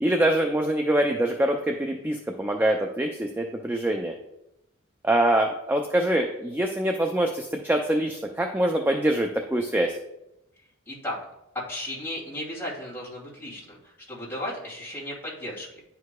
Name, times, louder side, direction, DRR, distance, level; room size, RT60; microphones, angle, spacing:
voice 1, 0.0-4.1 5.0-10.0, right 1 dB, 10° right, 3 dB, 0.3 m, -24 dB
voice 2, 10.9-11.2 11.5-15.8, left 1 dB, 10° left, -7 dB, 2.5 m, -35 dB
10.5 x 4.7 x 2.2 m, 0.87 s
head